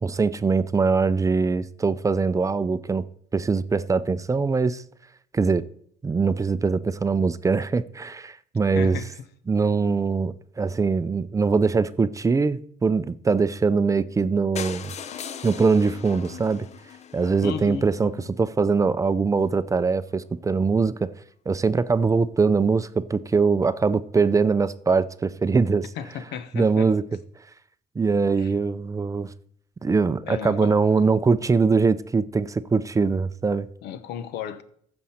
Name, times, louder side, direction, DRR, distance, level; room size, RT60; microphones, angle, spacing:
voice 1, 0.0-3.1 3.3-4.8 5.3-5.6 6.0-9.0 9.5-14.9 15.4-16.7 17.1-18.1 18.4-20.9 21.5-25.9 26.5-27.0 28.0-29.3 29.8-33.7, right 4 dB, 20° right, 0.5 m, -22 dB
voice 2, 8.7-9.1 17.4-18.3 26.0-26.9 28.4-28.5 30.3-30.8 33.8-34.6, left 8 dB, 80° left, 1.0 m, -34 dB
sound 1, 14.6-18.4 19.1-19.2 19.4-19.5 19.8-19.9 20.1-20.2, left 7 dB, 40° left, 0.6 m, -39 dB
14.5 x 6.3 x 4.3 m
cardioid pair, 110°, 17 cm